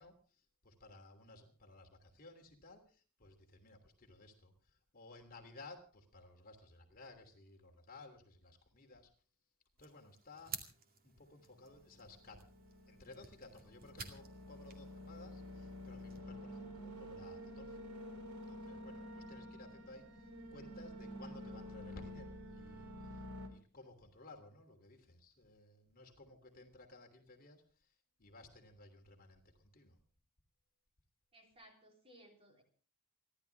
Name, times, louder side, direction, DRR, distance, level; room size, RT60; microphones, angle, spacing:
voice 1, 0.0-9.1 9.8-10.5 11.0-12.4 12.9-17.8 18.5-30.0, left 2 dB, 45° left, 3 dB, 3.1 m, -57 dB
sound 1, 9.8-16.2, right 5 dB, 45° right, 2.3 m, -53 dB
sound 2, 11.6-23.5, equal, 80° right, 3.4 m, -50 dB
voice 2, 31.3-32.6, right 1 dB, 25° right, 3 dB, 3.6 m, -61 dB
29.0 x 12.0 x 3.5 m, 0.39 s
head